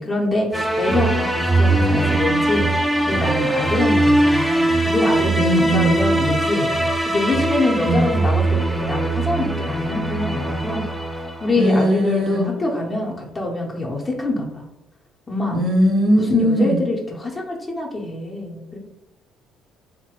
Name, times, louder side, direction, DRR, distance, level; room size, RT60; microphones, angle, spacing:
voice 1, 0.0-14.6 15.3-15.6 16.1-18.8, left 2 dB, 30° left, -2 dB, 0.7 m, -25 dB
sound 1, 0.5-11.9, right 1 dB, ahead, 0.4 m, -21 dB
voice 2, 5.4-6.0 7.8-8.1 11.5-12.5 15.5-16.8, equal, 55° right, 2 dB, 0.8 m, -19 dB
3.0 x 2.1 x 2.9 m, 0.91 s
supercardioid pair, 60°, 0 cm